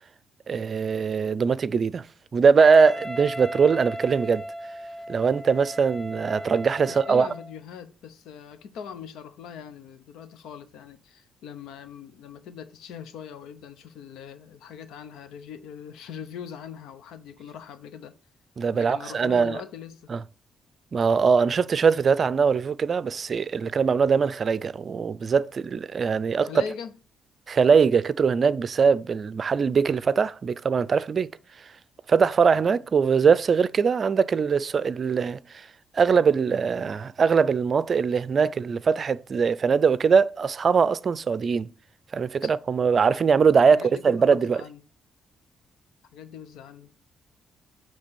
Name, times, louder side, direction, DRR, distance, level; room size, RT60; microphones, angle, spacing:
voice 1, 0.5-2.0 2.3-4.4 5.1-7.3 18.6-19.6 20.1-20.2 20.9-26.6 27.5-31.3 32.1-35.4 35.9-41.7 42.1-44.6, right 5 dB, 45° right, 0.5 m, -21 dB
Wind instrument woodwind instrument, 2.6-7.6, equal, 10° left, 0.9 m, -37 dB
voice 2, 6.9-18.2 18.7-20.0 26.4-26.9 42.4-42.5 43.7-44.8 46.1-46.9, left 7 dB, 85° left, 0.9 m, -41 dB
9.7 x 3.3 x 6.9 m
cardioid pair, 90°, 0 cm